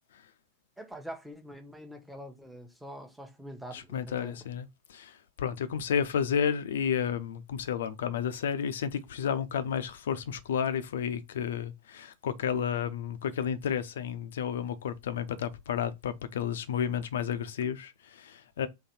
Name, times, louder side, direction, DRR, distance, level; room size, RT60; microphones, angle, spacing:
voice 1, 0.8-4.4, equal, ahead, 1.0 m, -44 dB
voice 2, 3.7-18.7, left 8 dB, 60° left, 0.5 m, -32 dB
3.9 x 3.0 x 4.3 m
figure-of-eight pair, 90°, 0 cm